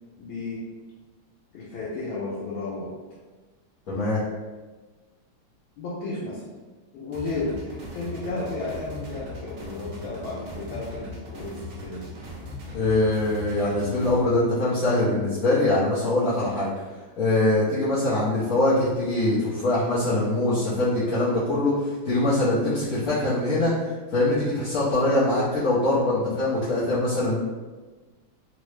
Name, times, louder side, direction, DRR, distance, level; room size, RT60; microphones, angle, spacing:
voice 1, 0.2-0.7 1.5-2.9 5.7-6.5 6.9-12.1, left 2 dB, 85° left, -7 dB, 1.4 m, -33 dB
voice 2, 3.9-4.2 12.7-16.7 17.2-23.7 24.1-27.4, left 2 dB, 60° left, -9 dB, 1.0 m, -23 dB
sound 1, 7.1-14.2, left 1 dB, 65° right, 0.9 m, -39 dB
3.8 x 2.1 x 3.1 m, 1.3 s
omnidirectional pair, 2.2 m